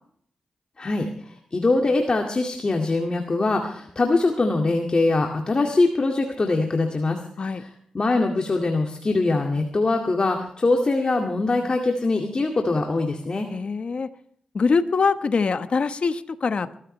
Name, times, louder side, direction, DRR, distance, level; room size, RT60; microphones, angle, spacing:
voice 1, 0.8-13.5, left 3 dB, 45° left, 2 dB, 2.2 m, -23 dB
voice 2, 13.5-14.1 14.5-16.8, left 4 dB, 60° left, 10 dB, 1.3 m, -23 dB
23.0 x 13.5 x 3.3 m, 0.64 s
cardioid pair, 50°, 2 cm